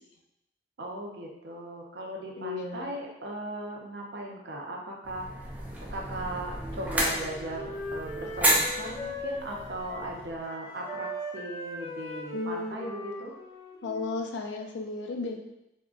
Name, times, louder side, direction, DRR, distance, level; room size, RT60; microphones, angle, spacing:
voice 1, 0.8-5.6 5.9-13.3, right 1 dB, 65° right, -1 dB, 0.5 m, -38 dB
voice 2, 2.4-2.9 12.3-12.9 13.8-15.4, left 3 dB, 90° left, 2 dB, 0.4 m, -34 dB
sound 1, 5.0-10.4, right 1 dB, 10° right, 0.4 m, -31 dB
Wind instrument woodwind instrument, 6.6-14.3, equal, 35° left, 1.2 m, -39 dB
3.6 x 2.1 x 2.4 m, 0.89 s
head